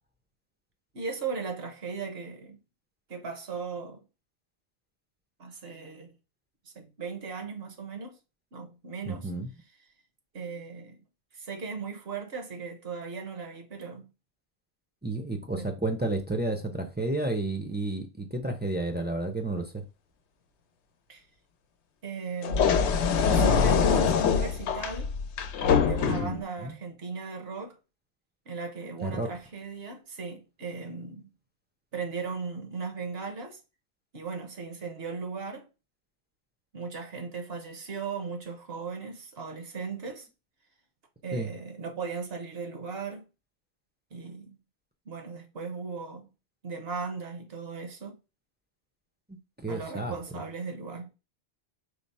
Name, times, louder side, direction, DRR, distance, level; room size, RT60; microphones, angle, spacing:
voice 1, 0.9-2.6 3.1-4.0 5.4-6.1 6.7-8.1 8.5-9.3 10.3-11.0 11.4-14.1 15.6-15.7 21.1-21.2 22.0-22.8 23.3-25.1 25.8-27.8 28.5-31.3 31.9-33.6 34.1-35.7 36.7-40.3 41.2-43.2 44.1-44.5 45.1-46.3 46.6-48.2 49.7-51.1, right 4 dB, 65° right, 1.1 m, -37 dB
voice 2, 9.1-9.5 15.0-19.8 26.0-26.7 29.0-29.3 41.3-41.5 49.3-50.1, right 2 dB, 15° right, 0.4 m, -31 dB
sound 1, 22.4-26.4, left 6 dB, 90° left, 0.9 m, -24 dB
4.9 x 2.0 x 4.1 m
omnidirectional pair, 1.1 m